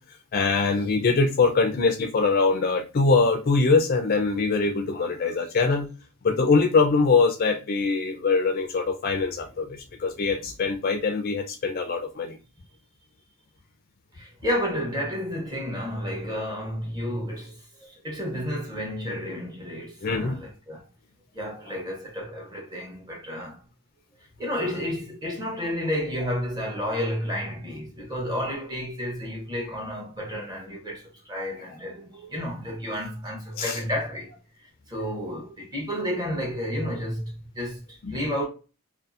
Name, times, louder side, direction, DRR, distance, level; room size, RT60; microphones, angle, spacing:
voice 1, 0.3-5.9 6.2-12.4 20.0-20.4 25.2-25.7 33.5-33.8 38.0-38.2, left 4 dB, 40° left, 0.3 m, -23 dB
voice 2, 14.1-20.8 21.3-23.6 24.4-34.3 34.9-38.5, equal, 15° right, 0.7 m, -31 dB
2.6 x 2.3 x 2.4 m
head